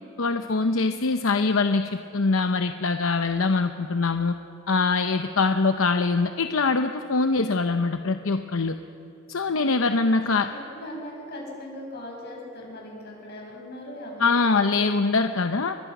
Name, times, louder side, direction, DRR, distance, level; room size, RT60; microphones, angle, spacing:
voice 1, 0.2-4.3 4.7-8.7 9.3-10.5 14.2-15.8, left 3 dB, 80° left, 7 dB, 0.8 m, -23 dB
voice 2, 9.6-15.1, left 1 dB, 55° left, -2 dB, 7.6 m, -40 dB
29.0 x 23.0 x 6.1 m, 2.7 s
head